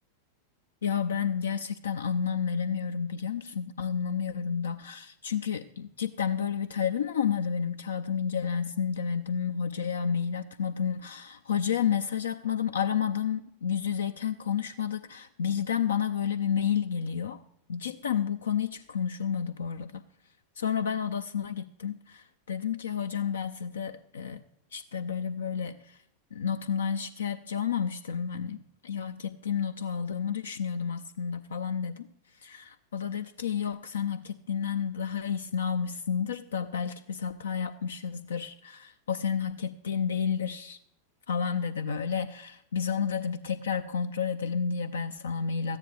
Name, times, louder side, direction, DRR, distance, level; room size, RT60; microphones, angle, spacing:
voice 1, 0.8-17.4 17.7-20.0 20.6-24.4 24.7-26.0 26.3-32.1 32.4-40.8 41.3-45.8, left 7 dB, 65° left, 10 dB, 0.4 m, -31 dB
13.5 x 9.9 x 3.3 m, 0.75 s
figure-of-eight pair, 90°, 0 cm